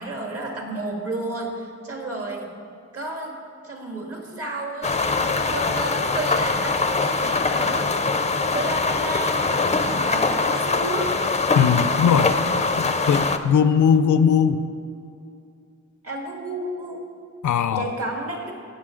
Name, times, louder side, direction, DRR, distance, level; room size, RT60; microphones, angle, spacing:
voice 1, 0.0-2.5 2.9-3.4 3.6-5.0 5.5-7.9 8.5-11.1 16.0-17.0 17.8-18.5, right 2 dB, 50° right, 0 dB, 1.8 m, -31 dB
sound 1, 4.8-13.4, left 3 dB, 25° left, 0.5 m, -23 dB
voice 2, 11.5-12.3 12.8-14.6 17.4-17.9, left 7 dB, 85° left, 12 dB, 0.5 m, -19 dB
17.5 x 6.8 x 3.8 m, 2.5 s
wide cardioid pair, 150°, 29 cm